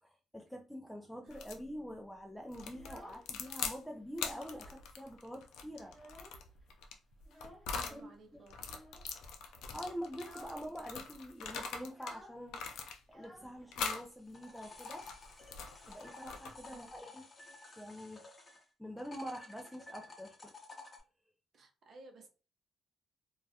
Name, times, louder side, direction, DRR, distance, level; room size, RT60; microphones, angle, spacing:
voice 1, 0.0-5.9 7.7-8.4 9.7-12.6 13.1-15.1 15.9-18.3 18.8-20.5, equal, 5° left, 0.3 m, -46 dB
sound 1, 1.3-1.6 2.5-3.8 4.1-8.0 8.5-12.2 12.5-13.2 13.7-14.1 14.6-16.7, left 5 dB, 85° left, 0.4 m, -42 dB
Child speech kid speaking, 2.7-3.7 4.0-4.8 5.1-5.2 5.5-6.6 7.3-7.7 8.6-9.1 9.5-9.7 10.1-10.7 10.9-11.0 11.2-14.0, equal, 15° right, 0.7 m, -56 dB
voice 2, 7.7-8.8 16.6-16.9 21.5-22.3, right 3 dB, 55° right, 0.7 m, -57 dB
sound 2, 14.1-18.6 19.0-21.0, left 3 dB, 30° left, 0.7 m, -52 dB
2.3 x 2.1 x 2.6 m
cardioid pair, 90°, 0 cm